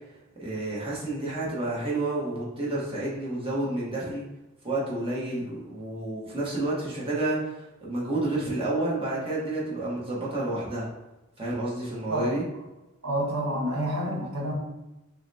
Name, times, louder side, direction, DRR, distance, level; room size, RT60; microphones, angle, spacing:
voice 1, 0.4-4.2 4.6-10.9 11.4-12.4, right 2 dB, 25° right, -6 dB, 1.1 m, -30 dB
voice 2, 13.0-14.5, right 1 dB, 65° right, -3 dB, 1.5 m, -28 dB
6.3 x 2.2 x 2.7 m, 1.0 s
head